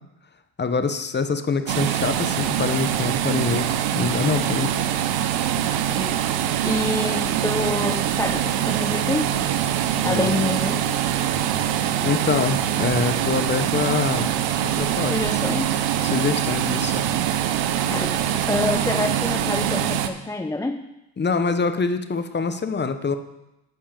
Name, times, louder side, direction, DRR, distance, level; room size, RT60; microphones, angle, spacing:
voice 1, 0.6-3.7 3.9-4.7 10.0-10.3 12.0-14.3 14.6-15.2 16.1-17.0 21.2-23.2, left 4 dB, 25° left, 9 dB, 1.0 m, -25 dB
sound 1, 1.7-20.1, right 10 dB, 80° right, 0.9 m, -23 dB
voice 2, 5.9-6.3 6.6-9.5 10.0-10.8 15.1-15.8 17.9-20.9, left 2 dB, 10° left, 7 dB, 0.4 m, -27 dB
10.5 x 5.4 x 7.4 m, 0.92 s
supercardioid pair, 90°, 45 cm